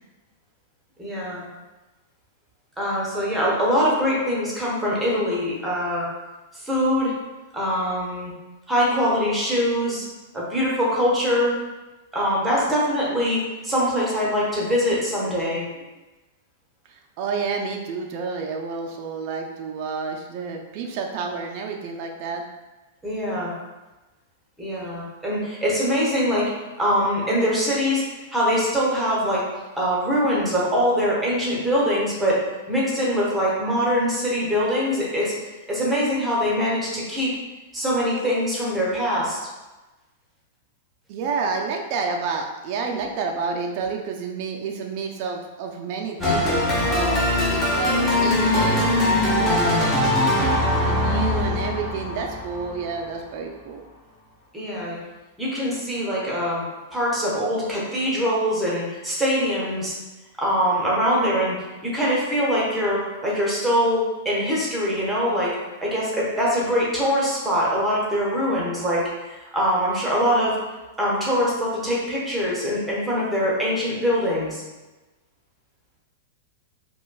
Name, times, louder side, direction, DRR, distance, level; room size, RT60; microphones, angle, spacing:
voice 1, 1.0-1.4 2.8-6.1 6.5-7.2 7.5-8.3 8.7-10.0 10.3-11.6 12.1-15.7 23.0-23.5 24.6-26.5 26.8-29.4 29.8-32.4 32.7-35.4 35.7-37.3 37.7-39.4 54.5-55.0 55.4-56.6 56.9-60.0 60.4-61.6 61.8-70.6 71.0-74.6, equal, 10° right, -6 dB, 1.1 m, -23 dB
voice 2, 17.2-22.4 41.1-50.0 50.8-53.8, right 5 dB, 45° right, 2 dB, 0.4 m, -29 dB
sound 1, 46.2-53.0, left 1 dB, 15° left, 0.8 m, -21 dB
4.9 x 2.2 x 2.3 m, 1.1 s
figure-of-eight pair, 100°, 0 cm